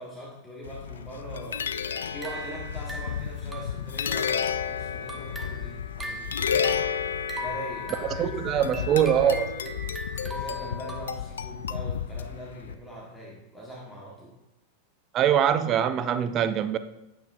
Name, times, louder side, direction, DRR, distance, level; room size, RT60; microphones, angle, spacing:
voice 1, 0.0-1.7 2.1-6.7 7.3-9.3 10.2-14.4, equal, 5° left, 1.4 m, -41 dB
sound-Xylophone in ix park, 0.6-12.7, left 7 dB, 65° left, 0.3 m, -32 dB
sound 1, 1.9-4.5 4.9-11.1, equal, 10° right, 1.0 m, -40 dB
voice 2, 8.0-9.7 15.1-16.8, right 9 dB, 30° right, 0.5 m, -23 dB
9.3 x 7.1 x 2.6 m
figure-of-eight pair, 90°, 0 cm